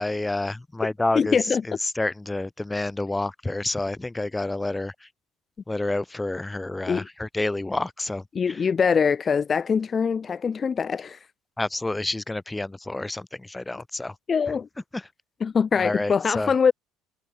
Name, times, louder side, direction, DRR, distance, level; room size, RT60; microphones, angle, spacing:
voice 1, 0.0-1.4 1.7-5.1 5.7-8.6 11.6-14.1 14.9-15.0 15.8-16.5, left 2 dB, 10° left, 2.2 m, -29 dB
voice 2, 1.1-1.6 6.9-7.1 8.3-11.2 14.3-14.7 15.4-16.7, left 6 dB, 25° left, 1.5 m, -23 dB
cardioid pair, 135°, 0 cm